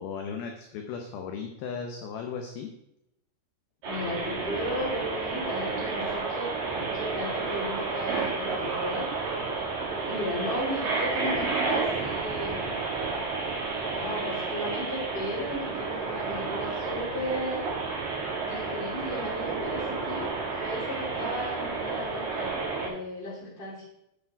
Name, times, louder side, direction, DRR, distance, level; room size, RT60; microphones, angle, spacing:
voice 1, 0.0-2.7, left 6 dB, 75° left, 3 dB, 2.3 m, -36 dB
voice 2, 3.8-9.1 10.0-12.8 13.9-17.7 18.4-22.5 22.8-23.9, equal, 15° left, -5 dB, 3.0 m, -35 dB
sound 1, 3.8-22.9, right 4 dB, 55° right, 4.1 m, -31 dB
8.9 x 8.4 x 4.6 m, 0.82 s
omnidirectional pair, 5.3 m